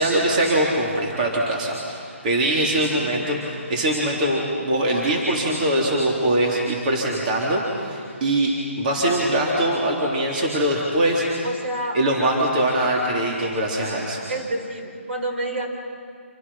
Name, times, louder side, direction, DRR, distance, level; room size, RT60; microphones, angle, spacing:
voice 1, 0.0-8.5 8.8-11.5 11.9-14.2, right 1 dB, 40° right, -3 dB, 3.7 m, -22 dB
voice 2, 11.4-12.0 14.3-15.7, right 1 dB, 55° right, 3 dB, 4.8 m, -28 dB
30.0 x 28.0 x 5.9 m, 2.3 s
hypercardioid pair, 150°, 7 cm